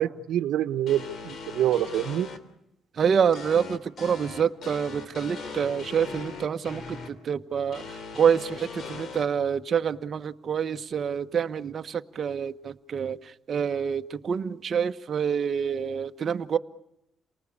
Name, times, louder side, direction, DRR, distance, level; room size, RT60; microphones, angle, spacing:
voice 1, 0.0-2.3, right 11 dB, 80° right, 10 dB, 1.2 m, -26 dB
sound 1, 0.9-2.4 3.3-7.1 7.7-9.2, left 4 dB, 60° left, 3.3 m, -39 dB
voice 2, 2.9-16.6, right 7 dB, 50° right, 8 dB, 1.2 m, -27 dB
29.0 x 19.5 x 8.6 m, 0.86 s
cardioid pair, 90°, 0 cm